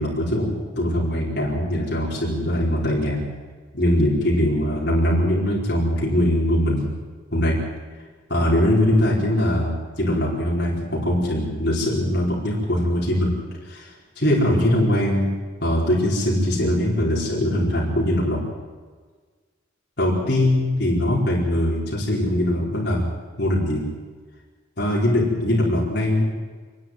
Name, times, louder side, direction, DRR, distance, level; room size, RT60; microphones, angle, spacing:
voice 1, 0.0-3.2 3.7-6.9 7.3-7.5 8.3-13.3 13.6-15.3 15.6-18.4 20.0-23.1 23.4-23.8 24.8-26.3, left 1 dB, 55° left, -5 dB, 4.9 m, -21 dB
28.5 x 11.0 x 9.4 m, 1.5 s
head